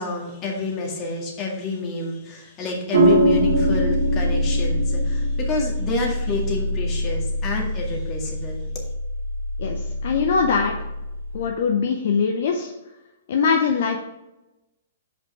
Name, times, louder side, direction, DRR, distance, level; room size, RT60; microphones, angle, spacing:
voice 1, 0.0-8.6, left 2 dB, 30° left, 0 dB, 1.9 m, -29 dB
sound 1, 2.9-11.5, equal, 70° right, 1.5 m, -23 dB
voice 2, 9.6-10.7 11.3-12.7 13.3-14.0, left 5 dB, 60° left, 3 dB, 0.7 m, -22 dB
5.3 x 5.2 x 4.8 m, 0.99 s
hypercardioid pair, 125°, 0 cm